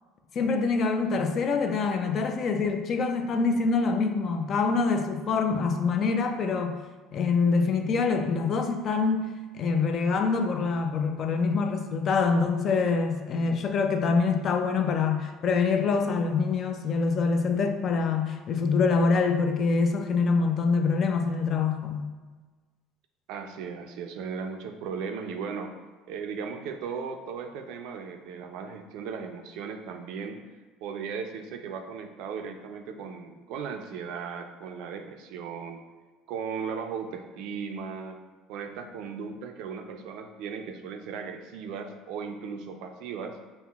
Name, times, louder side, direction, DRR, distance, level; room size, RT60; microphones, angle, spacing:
voice 1, 0.3-6.8 7.1-9.3 9.6-22.1, left 4 dB, 50° left, 6 dB, 0.4 m, -25 dB
voice 2, 23.3-25.8 26.1-30.4 30.8-35.8 36.3-38.2 38.5-43.4, right 6 dB, 75° right, 6 dB, 0.3 m, -37 dB
5.5 x 2.0 x 2.3 m, 1.4 s
supercardioid pair, 90°, 0 cm